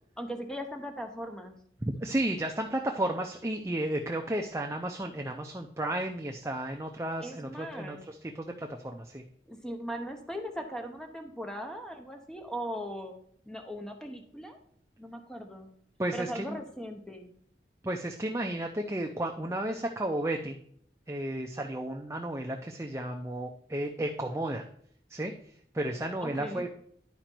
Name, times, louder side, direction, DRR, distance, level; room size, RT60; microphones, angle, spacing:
voice 1, 0.2-1.6 7.2-8.0 9.5-13.1 13.5-14.6 15.0-15.7 16.1-17.3 26.2-26.6, equal, 5° left, 5 dB, 0.8 m, -39 dB
voice 2, 1.9-9.2 16.0-16.6 17.8-20.6 21.1-24.6 25.1-25.3 25.7-26.7, right 1 dB, 15° right, 3 dB, 0.5 m, -33 dB
10.5 x 5.0 x 4.4 m, 0.64 s
head